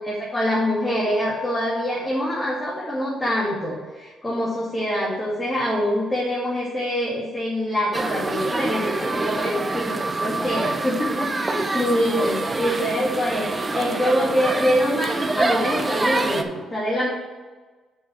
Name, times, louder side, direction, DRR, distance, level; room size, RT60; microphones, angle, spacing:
voice 1, 0.0-17.1, equal, 15° left, -6 dB, 2.2 m, -24 dB
sound 1, 7.9-16.4, right 3 dB, 25° right, 0.7 m, -26 dB
6.0 x 5.8 x 6.3 m, 1.3 s
cardioid pair, 90°, 0 cm